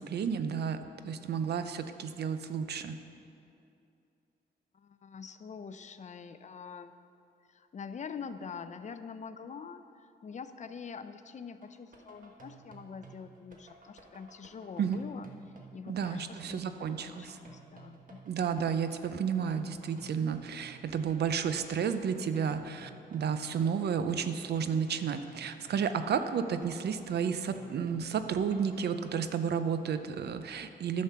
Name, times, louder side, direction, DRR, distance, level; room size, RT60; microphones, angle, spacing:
voice 1, 0.0-3.0 14.8-15.0 15.9-17.4 18.3-31.0, right 7 dB, 70° right, 10 dB, 0.6 m, -32 dB
voice 2, 4.7-6.9 7.5-15.3 15.7-18.2, left 6 dB, 45° left, 11 dB, 0.5 m, -45 dB
sound 1, 11.6-29.2, right 4 dB, 50° right, 1.3 m, -55 dB
10.5 x 6.5 x 5.6 m, 2.6 s
cardioid pair, 95°, 18 cm